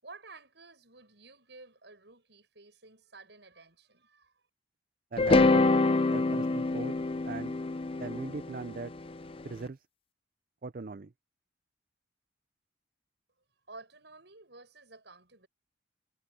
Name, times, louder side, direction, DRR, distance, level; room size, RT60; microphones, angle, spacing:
voice 1, 0.0-4.5 13.7-15.5, right 3 dB, 65° right, 7.8 m, -52 dB
voice 2, 5.1-5.7 6.1-7.6 8.0-8.9 9.4-9.8 10.6-11.1, right 4 dB, 50° right, 0.5 m, -40 dB
sound 1, 5.2-9.3, left 3 dB, 30° left, 0.5 m, -26 dB
head